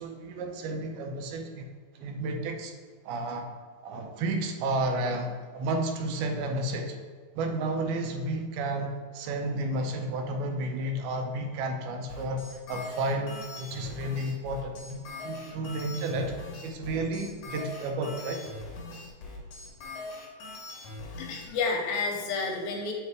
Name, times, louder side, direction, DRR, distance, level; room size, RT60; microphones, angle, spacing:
voice 1, 0.0-1.7 2.0-2.7 3.0-3.5 3.8-7.0 7.4-18.5, right 2 dB, 80° right, 4 dB, 2.5 m, -32 dB
sound 1, 12.1-21.4, left 2 dB, 65° left, 1.8 m, -41 dB
voice 2, 21.0-22.9, left 4 dB, 80° left, 1 dB, 2.3 m, -30 dB
7.6 x 3.2 x 4.7 m, 1.5 s
omnidirectional pair, 4.4 m